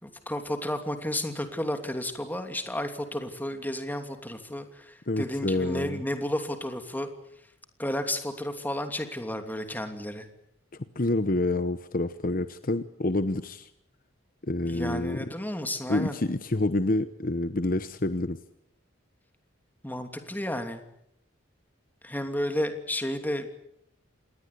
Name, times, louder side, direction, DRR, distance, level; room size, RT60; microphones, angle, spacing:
voice 1, 0.0-7.1 7.8-10.3 14.6-16.2 19.8-20.8 22.0-23.5, left 1 dB, 10° left, 7 dB, 2.8 m, -32 dB
voice 2, 5.1-6.0 11.0-13.7 14.4-15.2 15.9-18.4, left 2 dB, 45° left, 12 dB, 1.0 m, -27 dB
27.5 x 20.0 x 8.5 m, 0.74 s
head